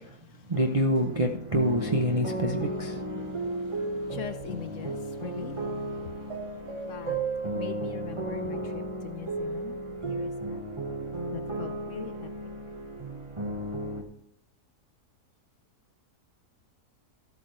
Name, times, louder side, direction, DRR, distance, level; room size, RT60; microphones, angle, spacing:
sound 1, 0.5-14.0, right 2 dB, 20° right, 1.3 m, -34 dB
voice 1, 0.5-3.0, equal, 40° right, 0.5 m, -26 dB
voice 2, 3.2-7.2 7.5-9.8 10.0-10.6 11.3-12.3, left 9 dB, 65° left, 0.8 m, -42 dB
13.5 x 8.5 x 3.2 m
omnidirectional pair, 1.7 m